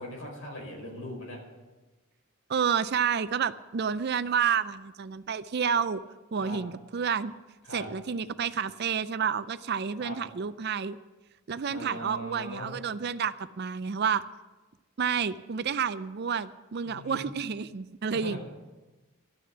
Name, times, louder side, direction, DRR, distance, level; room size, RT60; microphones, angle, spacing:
voice 1, 0.0-1.4 6.4-6.6 7.6-7.9 10.0-10.2 11.7-12.7 16.8-17.2 18.1-18.4, equal, 65° left, -1 dB, 5.1 m, -40 dB
voice 2, 2.5-6.0 6.3-7.3 7.7-11.0 11.5-14.2 15.0-18.4, right 7 dB, 45° right, 15 dB, 0.4 m, -30 dB
13.0 x 6.8 x 9.7 m, 1.2 s
head